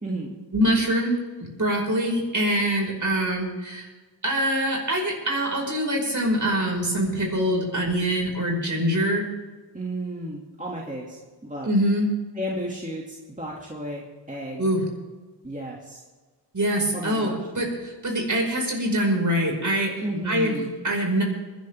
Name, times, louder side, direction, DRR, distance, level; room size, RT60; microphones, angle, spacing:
voice 1, 0.0-0.4 9.7-11.7 12.4-14.7 15.4-16.0 16.9-17.4 20.0-20.7, right 1 dB, 20° right, -3 dB, 2.5 m, -33 dB
voice 2, 0.5-3.9 4.2-9.2 11.6-12.1 14.6-14.8 16.5-21.2, equal, 45° right, 0 dB, 5.4 m, -24 dB
21.0 x 11.5 x 3.6 m, 1.4 s
cardioid pair, 60°, 43 cm